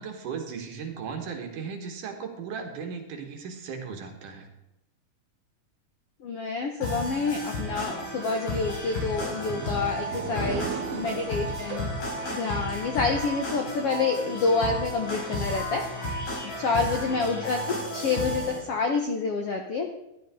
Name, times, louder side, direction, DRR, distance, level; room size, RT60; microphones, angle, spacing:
voice 1, 0.0-4.5 10.7-11.1 16.9-17.2, right 6 dB, 65° right, 4 dB, 2.9 m, -37 dB
voice 2, 6.2-11.9 12.3-15.8 16.4-19.9, left 4 dB, 70° left, 3 dB, 1.4 m, -28 dB
sound 1, 6.8-18.6, left 1 dB, 85° left, 6.2 m, -33 dB
sound 2, 8.9-13.6, right 8 dB, 90° right, 1.4 m, -39 dB
15.0 x 11.0 x 3.8 m, 0.89 s
omnidirectional pair, 4.2 m